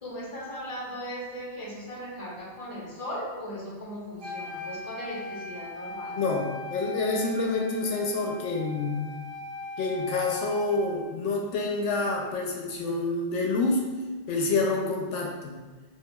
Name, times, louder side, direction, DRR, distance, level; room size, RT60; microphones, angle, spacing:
voice 1, 0.0-6.2, equal, 30° left, -6 dB, 1.0 m, -38 dB
Wind instrument woodwind instrument, 4.2-11.2, left 1 dB, 60° right, 0.9 m, -39 dB
voice 2, 6.2-9.0 9.8-13.9 14.3-15.5, left 3 dB, 80° left, -1 dB, 0.9 m, -27 dB
4.7 x 2.5 x 2.3 m, 1.3 s
omnidirectional pair, 1.2 m